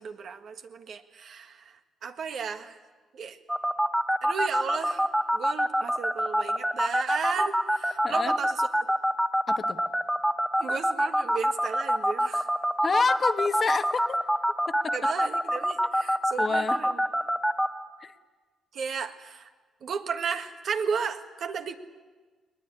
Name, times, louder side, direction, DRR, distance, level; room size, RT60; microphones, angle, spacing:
voice 1, 0.0-2.8 3.1-3.4 4.2-5.1 5.3-8.7 10.6-12.5 14.9-17.0 18.7-19.5 19.8-21.8, right 6 dB, 60° right, 7 dB, 1.6 m, -34 dB
sound 1, 3.5-17.7, equal, 5° right, 1.4 m, -24 dB
voice 2, 9.5-9.8 12.8-14.2 14.7-14.9 16.4-16.8 18.0-18.1, left 4 dB, 40° left, 9 dB, 1.2 m, -28 dB
20.5 x 20.5 x 10.0 m, 1.4 s
cardioid pair, 90°, 0 cm